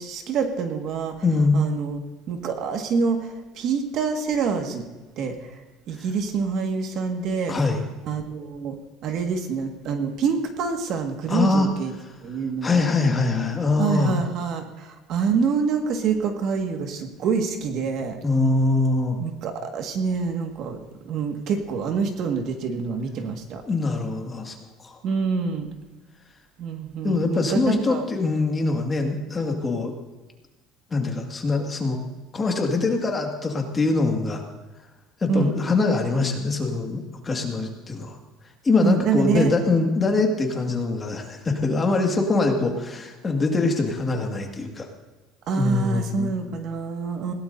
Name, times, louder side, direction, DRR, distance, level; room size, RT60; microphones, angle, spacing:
voice 1, 0.0-1.2 1.5-2.0 2.3-4.8 5.2-5.6 5.9-7.6 8.1-8.8 9.0-11.9 12.2-12.9 13.8-18.2 19.2-20.8 21.0-23.6 25.0-25.7 26.6-28.1 35.3-35.5 38.8-39.5 45.5-47.3, right 5 dB, 50° right, 4 dB, 1.8 m, -26 dB
voice 2, 1.2-1.6 6.0-6.1 7.5-7.8 11.3-11.7 12.6-14.2 18.2-19.2 23.6-25.0 27.0-29.9 30.9-32.0 32.3-34.4 35.2-38.2 38.6-44.9 45.5-46.3, left 3 dB, 20° left, 2 dB, 2.0 m, -23 dB
20.5 x 17.0 x 2.7 m, 1.2 s
cardioid pair, 140°, 0 cm